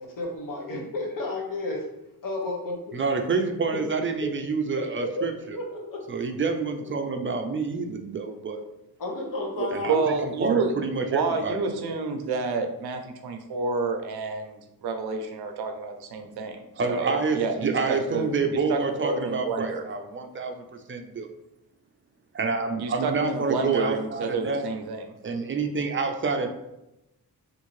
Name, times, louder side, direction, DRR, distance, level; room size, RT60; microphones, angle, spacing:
voice 1, 0.0-1.9 2.2-3.0 3.7-3.8 4.2-4.3 4.8-6.1 9.0-10.0, left 2 dB, 60° left, 0 dB, 0.9 m, -32 dB
voice 2, 2.9-5.6 6.1-8.6 9.7-11.7 16.8-21.3 22.3-24.7 25.2-26.5, right 4 dB, 35° right, 5 dB, 0.4 m, -28 dB
voice 3, 9.6-10.7 11.1-16.6 16.9-18.3 18.7-19.9 22.8-25.1, right 4 dB, 90° right, 6 dB, 0.6 m, -29 dB
3.5 x 2.5 x 3.1 m, 0.91 s
wide cardioid pair, 95°, 37 cm